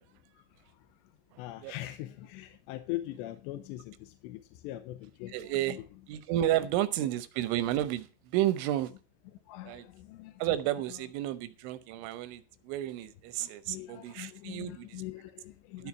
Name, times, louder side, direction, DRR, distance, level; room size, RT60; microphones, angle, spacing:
voice 1, 0.3-1.1 1.4-5.8 9.5-10.4 10.9-11.0 13.4-15.9, left 15 dB, 80° left, 2.8 m, -42 dB
voice 2, 5.3-5.8 6.1-8.9 9.7-9.8 10.4-14.9 15.8-15.9, right 13 dB, 85° right, 3.3 m, -31 dB
13.5 x 4.7 x 7.1 m
omnidirectional pair, 5.4 m